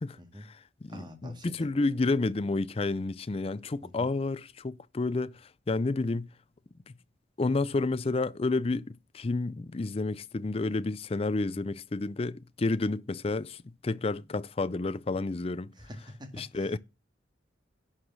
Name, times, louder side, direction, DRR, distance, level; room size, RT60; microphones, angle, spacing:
voice 1, 0.0-5.3 5.7-6.3 7.4-15.7 16.3-16.8, left 3 dB, 30° left, 0.4 m, -30 dB
voice 2, 0.9-1.7 3.8-4.1 15.8-16.8, equal, 25° right, 2.0 m, -46 dB
11.5 x 5.0 x 6.0 m
head